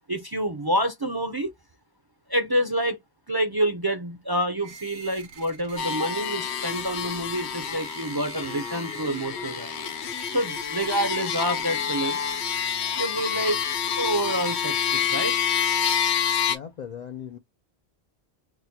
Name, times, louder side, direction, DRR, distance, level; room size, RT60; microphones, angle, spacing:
voice 1, 0.1-1.5 2.3-3.0 3.3-9.9 10.3-12.2 13.0-13.6 14.0-15.4, right 1 dB, 30° right, 0.5 m, -27 dB
sound 1, 4.6-15.6, right 5 dB, 80° right, 1.1 m, -46 dB
sound 2, 5.8-16.6, left 8 dB, 75° left, 1.0 m, -28 dB
voice 2, 16.5-17.4, left 8 dB, 55° left, 0.5 m, -38 dB
6.0 x 2.2 x 2.7 m
omnidirectional pair, 1.1 m